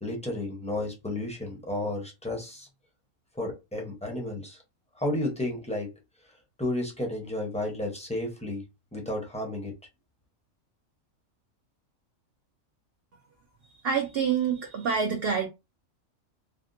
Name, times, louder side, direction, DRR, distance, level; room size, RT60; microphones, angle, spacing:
voice 1, 0.0-2.7 3.4-4.6 5.0-5.9 6.6-8.6 8.9-9.7, left 1 dB, 5° left, 0.5 m, -32 dB
voice 2, 13.8-15.5, right 6 dB, 65° right, 0.6 m, -26 dB
3.4 x 2.1 x 2.5 m
omnidirectional pair, 1.5 m